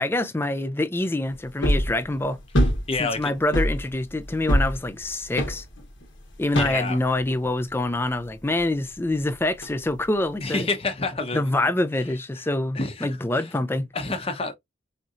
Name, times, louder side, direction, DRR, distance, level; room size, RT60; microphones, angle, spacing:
voice 1, 0.0-2.4 3.0-5.6 6.4-10.7 11.3-13.9, left 2 dB, 10° left, 0.3 m, -26 dB
sound 1, 1.6-2.0 2.5-3.2 3.5-6.0 6.6-7.0 9.6-9.7, equal, 70° left, 1.1 m, -23 dB
voice 2, 2.9-3.3 6.5-7.0 10.4-11.5 12.7-13.1 13.3-13.4 13.9-14.5, left 3 dB, 30° left, 0.8 m, -28 dB
4.3 x 2.7 x 2.5 m
head